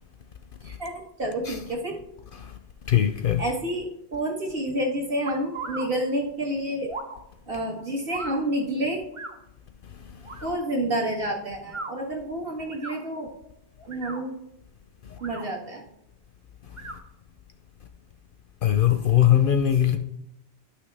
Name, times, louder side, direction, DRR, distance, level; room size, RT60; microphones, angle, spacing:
voice 1, 1.2-2.0 3.4-6.9 7.5-9.0 10.4-13.3 13.9-14.3 15.2-15.8, right 1 dB, 55° right, 1.8 m, -29 dB
voice 2, 2.9-3.4 18.6-20.0, left 11 dB, 60° left, 0.6 m, -20 dB
sound 1, 5.2-5.9 6.9-7.2 8.1-8.4 9.1-9.3 10.2-10.5 11.6-11.9 12.7-13.0 13.8-14.2 15.1-15.5 16.7-17.0, right 3 dB, 30° right, 0.7 m, -37 dB
11.5 x 6.1 x 3.3 m
omnidirectional pair, 1.2 m